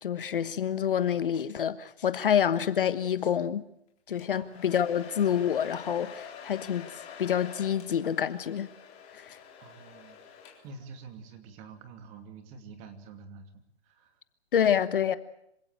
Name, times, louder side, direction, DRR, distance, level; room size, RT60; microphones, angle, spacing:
voice 1, 0.0-3.6 4.1-6.9 7.2-8.7 9.1-9.4 14.5-15.2, left 9 dB, 50° left, 1.3 m, -27 dB
Domestic sounds home sounds, 4.2-10.9, left 7 dB, 20° left, 3.9 m, -47 dB
voice 2, 9.6-10.2 10.6-14.2, right 4 dB, 20° right, 2.6 m, -48 dB
26.5 x 17.0 x 8.8 m
hypercardioid pair, 150°, 33 cm